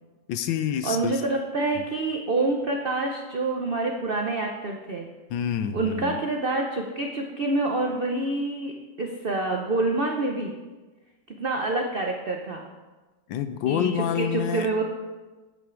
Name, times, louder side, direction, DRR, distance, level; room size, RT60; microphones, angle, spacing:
voice 1, 0.3-1.2 1.8-1.9 5.3-6.2 13.3-14.7, left 9 dB, 85° left, 9 dB, 1.3 m, -27 dB
voice 2, 0.8-5.1 5.7-10.5 11.3-12.7 13.7-14.8, right 2 dB, 70° right, 2 dB, 0.5 m, -27 dB
9.0 x 8.7 x 3.8 m, 1.2 s
omnidirectional pair, 2.0 m